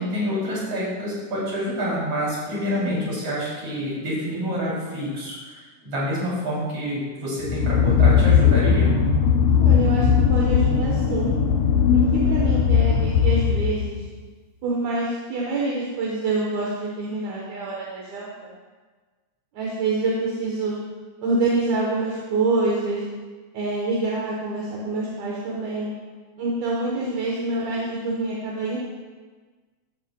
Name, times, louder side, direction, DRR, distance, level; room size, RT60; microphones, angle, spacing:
voice 1, 0.0-9.0, equal, 50° right, -7 dB, 3.9 m, -27 dB
voice 2, 2.8-3.2 9.6-11.3 11.9-14.1 14.6-18.5 19.5-20.7 21.2-23.0 23.5-25.9 26.4-28.8, right 3 dB, 75° right, -4 dB, 2.5 m, -26 dB
sound 1, 7.4-14.0, left 7 dB, 85° left, 2.0 m, -18 dB
13.5 x 7.5 x 2.3 m, 1.4 s
omnidirectional pair, 3.4 m